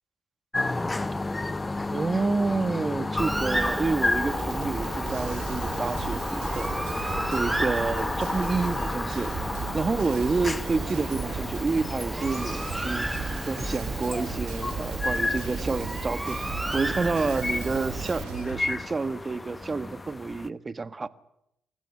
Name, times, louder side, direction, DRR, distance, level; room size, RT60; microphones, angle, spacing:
sound 1, 0.5-20.5, left 2 dB, 20° left, 1.0 m, -32 dB
voice 1, 1.9-6.8 7.3-9.3 9.7-13.1 13.5-16.4 16.7-21.1, right 4 dB, 30° right, 1.6 m, -29 dB
Bird, 3.2-18.2, right 1 dB, 15° right, 1.2 m, -33 dB
sound 2, 4.2-18.7, right 9 dB, 85° right, 4.7 m, -39 dB
26.5 x 14.5 x 9.9 m
supercardioid pair, 65°, 0 cm